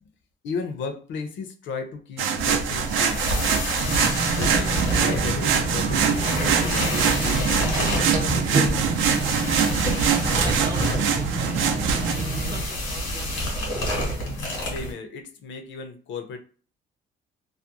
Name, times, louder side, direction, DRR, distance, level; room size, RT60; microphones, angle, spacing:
voice 1, 0.4-3.2 4.4-4.8 5.0-8.9 14.6-16.4, left 5 dB, 75° left, 6 dB, 0.6 m, -35 dB
sound 1, 2.2-12.1, right 8 dB, 80° right, 0.4 m, -24 dB
sound 2, 2.4-14.9, equal, 90° left, 1.2 m, -29 dB
sound 3, 3.8-12.6, right 3 dB, 40° right, 0.8 m, -29 dB
voice 2, 10.3-11.8 12.2-14.1, right 4 dB, 20° right, 6 dB, 0.4 m, -40 dB
2.5 x 2.0 x 2.8 m, 0.39 s
cardioid pair, 90°, 20 cm